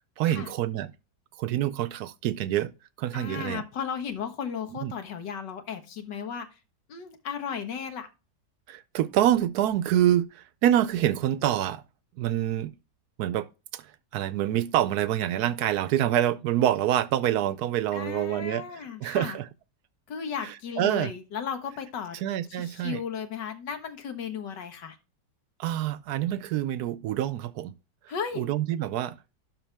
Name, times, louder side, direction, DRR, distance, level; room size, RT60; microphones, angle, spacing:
voice 1, 0.2-0.9 1.4-2.7 3.0-3.6 4.7-4.9 8.7-11.8 12.2-12.7 13.2-13.9 14.1-18.6 19.0-19.5 20.4-21.1 22.2-23.0 25.6-27.7 28.4-29.2, right 12 dB, 70° right, 1.0 m, -26 dB
voice 2, 3.1-6.6 6.9-8.1 17.9-19.4 20.1-22.2 22.5-25.0 28.1-28.5, left 7 dB, 85° left, 2.0 m, -35 dB
12.0 x 4.2 x 3.3 m
omnidirectional pair, 1.8 m